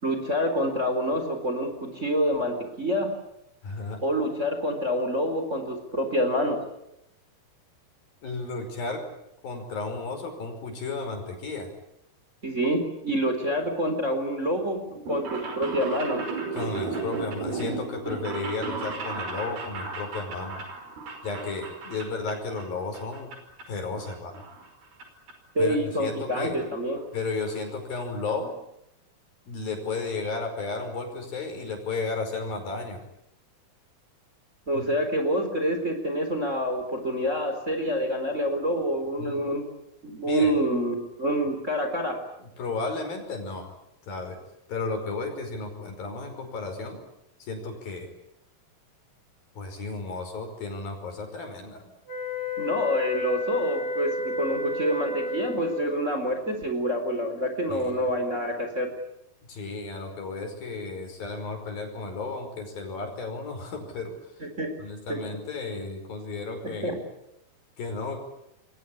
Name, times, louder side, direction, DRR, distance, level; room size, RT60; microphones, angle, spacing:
voice 1, 0.0-3.1 4.0-6.6 12.4-16.2 25.5-27.0 34.7-39.6 40.0-42.2 52.6-58.9 64.4-64.7 65.1-65.2 66.6-67.0, equal, 20° right, 6 dB, 4.2 m, -27 dB
voice 2, 3.6-4.0 8.2-9.0 9.4-11.7 16.5-20.6 21.2-23.3 23.7-24.4 25.6-26.7 27.1-28.6 29.5-33.0 34.7-34.9 39.2-39.4 40.3-40.5 42.4-43.7 44.0-44.4 44.7-47.0 47.4-48.1 49.6-51.9 57.7-58.0 59.5-64.2 64.8-67.0 67.8-68.2, left 3 dB, 70° left, 5 dB, 7.1 m, -33 dB
sound 1, 14.9-22.7 22.9-23.6 24.0-25.0 25.3-25.4 26.3-26.4 26.6-26.7 27.0-27.1 27.3-27.6 28.0-28.1 28.3-28.4, right 4 dB, 85° right, 7.0 m, -35 dB
sound 2, 52.1-56.0, left 2 dB, 90° left, 7.0 m, -31 dB
28.0 x 23.0 x 8.7 m, 0.81 s
omnidirectional pair, 4.2 m